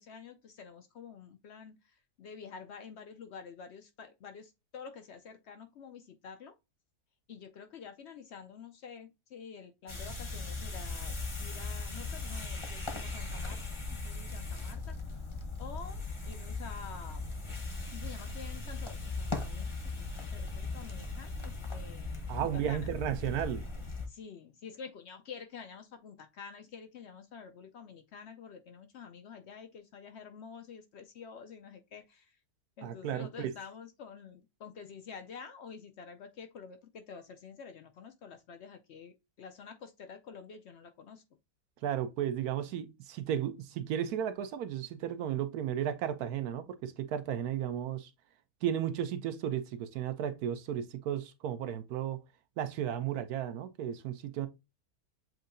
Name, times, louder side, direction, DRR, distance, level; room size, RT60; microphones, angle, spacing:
voice 1, 0.0-6.5 7.3-11.1 11.4-13.6 13.9-15.3 15.6-17.3 17.9-20.1 20.3-22.1 22.4-22.9 24.1-32.4 32.8-41.2, left 6 dB, 70° left, 0.6 m, -48 dB
sound 1, 9.9-24.1, left 3 dB, 25° left, 0.7 m, -38 dB
voice 2, 22.3-23.6 32.8-33.5 41.8-48.1 48.6-52.2 52.6-54.5, right 10 dB, 75° right, 1.1 m, -34 dB
7.5 x 2.7 x 2.5 m
omnidirectional pair, 1.7 m